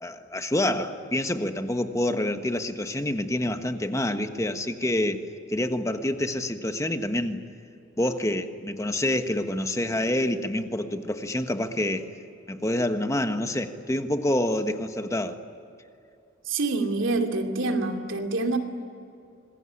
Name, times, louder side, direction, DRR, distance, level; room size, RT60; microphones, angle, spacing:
voice 1, 0.0-5.2 5.5-7.4 8.0-12.1 12.5-15.4, left 1 dB, 15° left, 8 dB, 1.3 m, -27 dB
voice 2, 16.5-18.6, right 3 dB, 75° right, 4 dB, 2.6 m, -26 dB
26.5 x 21.5 x 9.8 m, 2.6 s
head